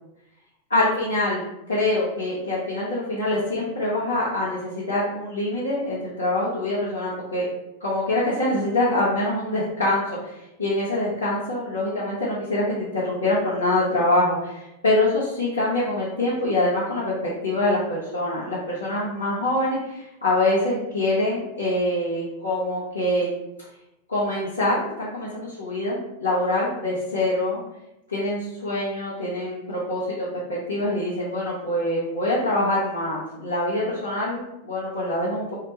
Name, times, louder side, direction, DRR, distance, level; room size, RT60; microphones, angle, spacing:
voice 1, 0.7-7.4 7.8-14.5 14.8-23.3 24.1-27.6 28.1-30.1 30.5-35.4, left 1 dB, 80° left, -11 dB, 1.0 m, -25 dB
2.8 x 2.1 x 3.1 m, 0.89 s
figure-of-eight pair, 90°, 0 cm